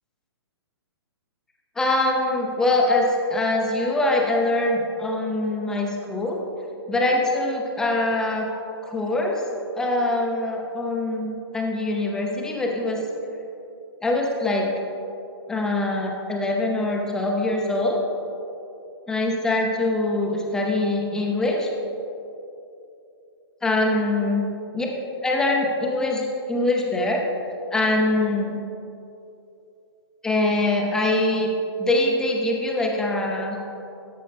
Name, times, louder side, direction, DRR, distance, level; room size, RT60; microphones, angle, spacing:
voice 1, 1.8-6.4 6.9-8.5 8.8-9.4 9.8-13.0 14.0-14.7 15.5-18.0 19.1-21.7 23.6-24.5 24.7-24.9 25.2-27.2 27.7-28.6 30.2-31.5 31.8-33.6, left 2 dB, 5° left, 0 dB, 0.6 m, -23 dB
13.0 x 5.3 x 3.4 m, 2.8 s
hypercardioid pair, 155°, 14 cm